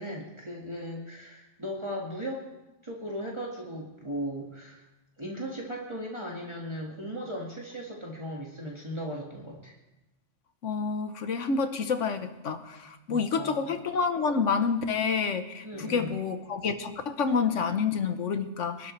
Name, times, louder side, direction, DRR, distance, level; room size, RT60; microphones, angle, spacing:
voice 1, 0.0-2.5 2.8-4.8 5.2-9.7 13.1-13.7 15.6-16.2, equal, 25° right, -3 dB, 2.0 m, -37 dB
voice 2, 10.6-18.9, left 5 dB, 90° left, 9 dB, 1.4 m, -28 dB
24.0 x 12.5 x 3.3 m, 0.99 s
omnidirectional pair, 1.2 m